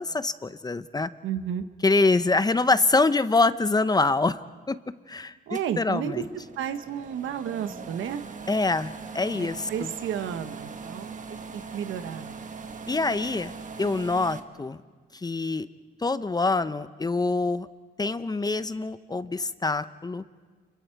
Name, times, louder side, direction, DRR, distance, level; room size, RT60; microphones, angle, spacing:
voice 1, 0.0-1.1 1.8-4.4 4.7-4.8 5.1-5.4 5.8-6.2 8.5-9.9 12.9-13.5 13.8-14.8 15.1-15.7 16.0-17.7 18.0-20.2, left 3 dB, 20° left, 13 dB, 0.7 m, -25 dB
voice 2, 1.2-1.7 5.5-6.2 6.6-8.2 9.3-12.4, right 9 dB, 80° right, 9 dB, 1.2 m, -32 dB
sound 1, 5.5-14.4, right 5 dB, 40° right, 1.5 m, -41 dB
29.5 x 22.5 x 4.7 m, 1.4 s
cardioid pair, 90°, 20 cm